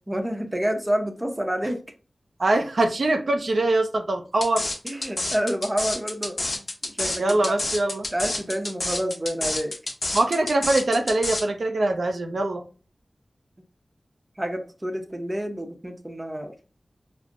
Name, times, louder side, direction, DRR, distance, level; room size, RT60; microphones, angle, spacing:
voice 1, 0.1-1.8 4.8-7.5 8.1-9.8 14.4-16.5, equal, 20° right, 5 dB, 0.7 m, -28 dB
voice 2, 2.4-4.6 7.2-8.1 10.1-12.6, right 2 dB, 75° right, 4 dB, 0.5 m, -23 dB
sound 1, 4.4-11.4, left 2 dB, 50° left, 0.9 m, -29 dB
5.0 x 2.0 x 2.5 m, 0.35 s
wide cardioid pair, 55°, 0 cm